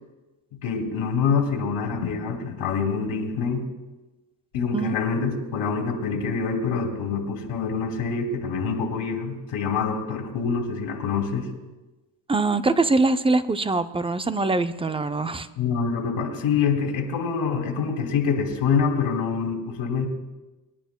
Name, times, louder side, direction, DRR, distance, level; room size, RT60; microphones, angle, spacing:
voice 1, 0.6-3.6 4.5-11.5 15.6-20.1, left 5 dB, 80° left, 2 dB, 2.7 m, -26 dB
voice 2, 12.3-15.5, right 3 dB, 15° right, 11 dB, 0.4 m, -23 dB
26.5 x 10.5 x 2.2 m, 1.1 s
cardioid pair, 100°, 49 cm